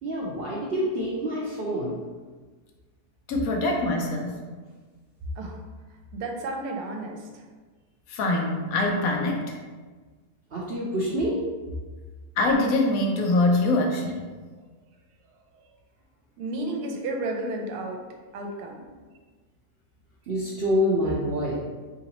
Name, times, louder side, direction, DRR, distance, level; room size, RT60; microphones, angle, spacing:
voice 1, 0.0-2.0 10.5-11.4 20.3-21.6, equal, 65° right, -6 dB, 0.6 m, -27 dB
voice 2, 3.3-4.4 8.1-9.6 12.4-14.3, left 2 dB, 70° left, 1 dB, 1.0 m, -24 dB
voice 3, 6.1-7.4 15.5-15.6 16.4-18.0 18.3-18.8, right 2 dB, 85° right, 2 dB, 1.1 m, -32 dB
3.8 x 3.0 x 2.9 m, 1.4 s
omnidirectional pair, 1.7 m